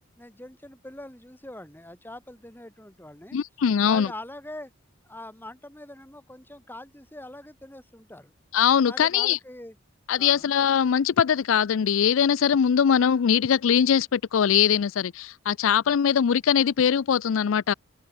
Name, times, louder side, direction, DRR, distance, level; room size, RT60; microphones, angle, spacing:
voice 1, 0.2-3.4 3.9-4.7 5.0-8.3 8.8-9.8 10.2-10.5, left 1 dB, 10° left, 3.5 m, -43 dB
voice 2, 3.3-4.1 8.5-9.4 10.1-17.7, left 8 dB, 75° left, 0.4 m, -21 dB
head